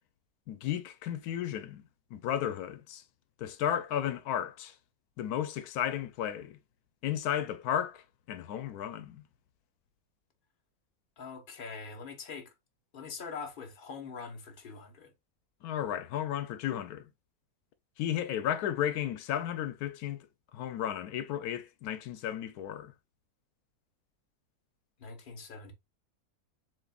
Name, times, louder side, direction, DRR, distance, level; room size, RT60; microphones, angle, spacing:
voice 1, 0.5-1.8 2.1-3.0 3.4-4.7 5.2-6.6 7.0-9.2 15.6-17.1 18.0-20.2 20.5-22.9, left 10 dB, 85° left, 1.1 m, -34 dB
voice 2, 11.2-12.5 12.9-15.1 25.0-25.7, left 5 dB, 35° left, 1.2 m, -43 dB
7.6 x 2.6 x 2.3 m
omnidirectional pair, 1.6 m